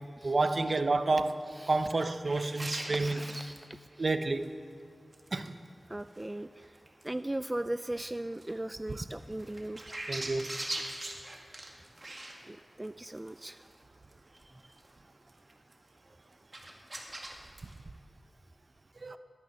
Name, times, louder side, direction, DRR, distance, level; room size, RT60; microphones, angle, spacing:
voice 1, 0.2-1.4 1.7-3.2 4.0-4.5 5.3-5.6 10.1-10.5 19.0-19.2, right 3 dB, 55° right, 10 dB, 0.8 m, -29 dB
sound 1, 2.2-3.6 3.9-4.0 4.4-4.5 5.1-5.7 6.0-7.1 7.5-7.6 8.3-8.5 8.9-12.9 13.2-13.8 14.1-14.4 14.7-14.9 15.3-15.7 16.1-16.2 16.5-17.8, right 1 dB, 40° right, 1.9 m, -41 dB
voice 2, 2.3-4.1 5.9-6.8 7.0-10.0 10.7-10.8 12.4-13.6 14.5-14.7, right 1 dB, 20° right, 12 dB, 0.3 m, -39 dB
20.0 x 9.3 x 5.5 m, 2.4 s
wide cardioid pair, 65°, 0 cm